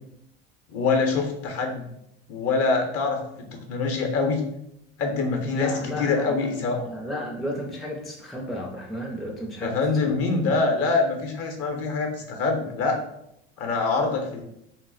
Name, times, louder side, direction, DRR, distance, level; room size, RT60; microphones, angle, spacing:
voice 1, 0.7-1.9 2.3-4.4 5.0-6.8 9.6-13.0 13.6-14.4, left 4 dB, 50° left, 4 dB, 0.7 m, -25 dB
voice 2, 5.6-10.2, equal, ahead, -2 dB, 0.4 m, -34 dB
2.3 x 2.0 x 3.8 m, 0.77 s
supercardioid pair, 115°, 30 cm